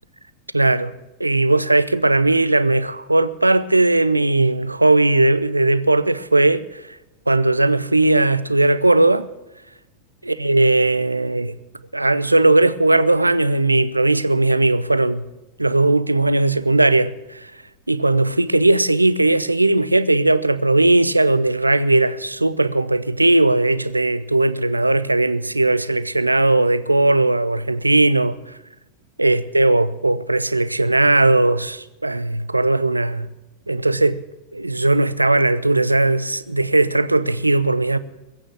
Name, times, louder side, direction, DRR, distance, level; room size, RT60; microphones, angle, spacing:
voice 1, 0.5-0.9 1.2-7.0 7.3-9.3 10.3-11.5 11.9-15.2 15.6-17.5 17.9-28.6 29.2-33.3 33.7-34.2 34.5-38.0, right 2 dB, 85° right, 0.7 m, -18 dB
21.5 x 8.8 x 7.3 m
figure-of-eight pair, 90°, 0 cm